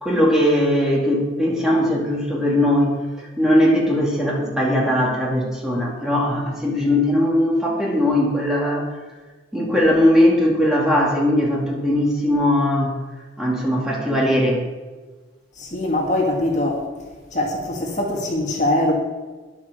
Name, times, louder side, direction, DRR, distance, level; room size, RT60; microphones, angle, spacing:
voice 1, 0.0-8.9 9.5-12.9 13.4-14.6, left 1 dB, 5° right, -3 dB, 2.4 m, -19 dB
voice 2, 15.6-16.8 17.3-18.9, left 1 dB, 40° left, -1 dB, 2.0 m, -22 dB
10.0 x 8.5 x 6.7 m, 1.3 s
head